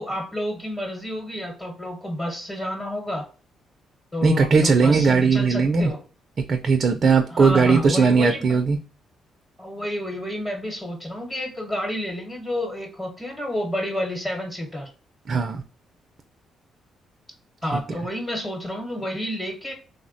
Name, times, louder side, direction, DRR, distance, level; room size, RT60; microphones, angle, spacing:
voice 1, 0.0-3.3 4.1-6.0 7.3-8.6 9.6-14.9 17.6-19.7, left 1 dB, 20° left, 1 dB, 1.0 m, -30 dB
voice 2, 4.2-5.9 6.5-8.8 15.3-15.6 17.7-18.0, right 5 dB, 45° right, 5 dB, 0.4 m, -19 dB
3.4 x 2.1 x 2.5 m, 0.37 s
cardioid pair, 90°, 0 cm